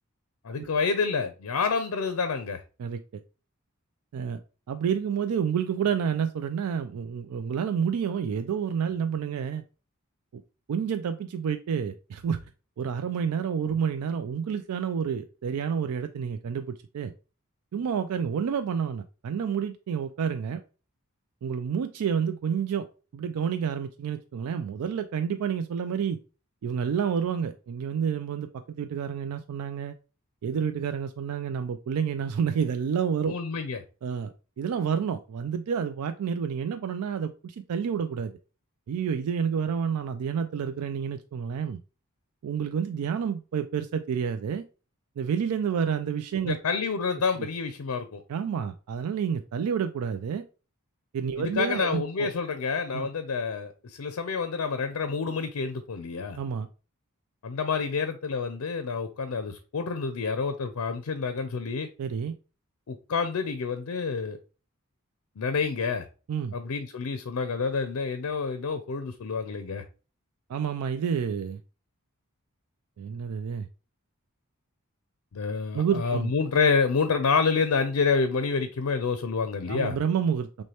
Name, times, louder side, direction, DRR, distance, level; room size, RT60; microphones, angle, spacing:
voice 1, 0.4-2.6 33.3-33.8 46.4-48.2 51.4-56.4 57.4-61.9 62.9-64.4 65.4-66.1 66.5-69.8 75.3-80.0, left 5 dB, 75° left, 0.5 m, -28 dB
voice 2, 2.8-3.2 4.1-4.4 4.7-9.6 10.3-10.4 10.7-12.4 12.8-17.1 17.7-20.6 21.4-22.9 23.1-26.2 26.6-30.0 30.4-33.3 34.0-38.3 38.9-41.8 42.4-44.6 45.2-46.6 47.4-47.5 48.3-50.4 51.1-52.3 52.9-53.1 56.4-56.7 62.0-62.4 66.3-66.5 70.5-71.6 73.0-73.7 75.7-76.3 79.7-80.6, right 7 dB, 80° right, 0.3 m, -29 dB
6.2 x 2.2 x 2.9 m
head